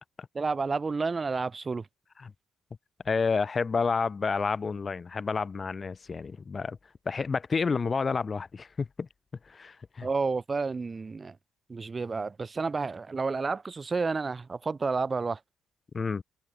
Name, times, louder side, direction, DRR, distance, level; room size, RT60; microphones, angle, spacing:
voice 1, 0.3-1.9 10.0-11.4 11.7-15.4, right 4 dB, 30° right, 1.1 m, -30 dB
voice 2, 3.0-6.8 7.1-9.1 9.5-10.1 15.9-16.2, left 5 dB, 35° left, 0.3 m, -30 dB
cardioid pair, 90°, 0 cm